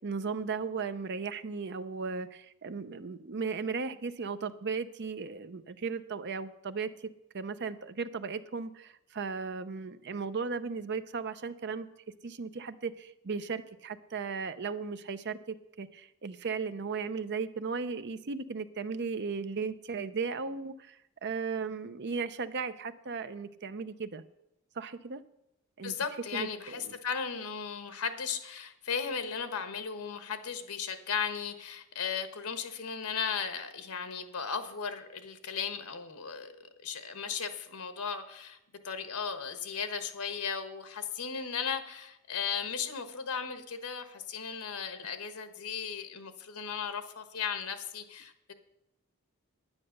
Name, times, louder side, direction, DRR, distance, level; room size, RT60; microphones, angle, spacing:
voice 1, 0.0-6.9 7.3-11.9 12.2-24.2 24.7-25.2 25.8-25.9 26.3-27.0, right 5 dB, 50° right, 12 dB, 0.6 m, -36 dB
voice 2, 25.8-36.5 36.8-38.6 38.8-48.5, left 6 dB, 85° left, 9 dB, 1.3 m, -36 dB
9.8 x 9.7 x 6.7 m, 0.85 s
head